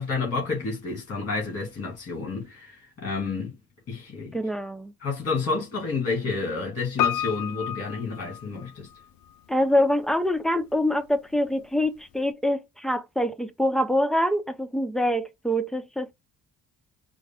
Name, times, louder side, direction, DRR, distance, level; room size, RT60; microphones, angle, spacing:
voice 1, 0.0-3.5 3.9-4.4 5.0-8.9, left 4 dB, 40° left, 2.3 m, -30 dB
voice 2, 4.3-4.9 9.5-16.1, left 1 dB, ahead, 0.7 m, -25 dB
Piano, 7.0-9.0 9.3-9.4, left 10 dB, 70° left, 0.5 m, -29 dB
4.6 x 2.2 x 3.4 m
supercardioid pair, 60°, 38 cm